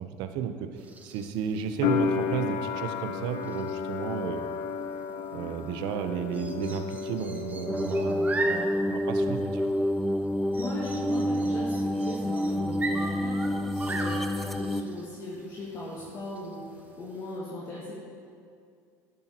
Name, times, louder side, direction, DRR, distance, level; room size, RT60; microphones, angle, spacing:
voice 1, 0.0-4.4 5.3-9.7, right 7 dB, 70° right, 8 dB, 0.7 m, -33 dB
sound 1, 0.8-17.4, right 3 dB, 20° right, 1.0 m, -41 dB
sound 2, 1.8-8.6 8.9-9.8, left 7 dB, 70° left, 0.8 m, -33 dB
sound 3, 7.7-14.8, equal, ahead, 0.3 m, -28 dB
voice 2, 10.5-18.0, left 2 dB, 45° left, -6 dB, 1.9 m, -38 dB
10.5 x 10.0 x 2.9 m, 2.3 s
supercardioid pair, 110°, 8 cm